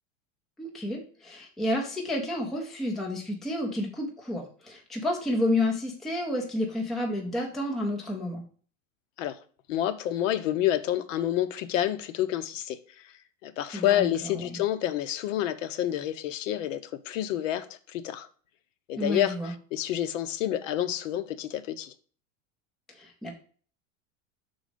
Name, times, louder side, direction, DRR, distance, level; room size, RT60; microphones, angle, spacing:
voice 1, 0.6-8.4 13.7-14.1 14.4-14.6 19.0-19.5 22.9-23.3, left 1 dB, ahead, 0.4 m, -30 dB
voice 2, 9.7-12.8 13.0-13.1 13.4-16.8 17.1-18.3 18.9-21.9, left 12 dB, 80° left, 0.8 m, -28 dB
6.0 x 4.0 x 5.0 m
supercardioid pair, 175°, 38 cm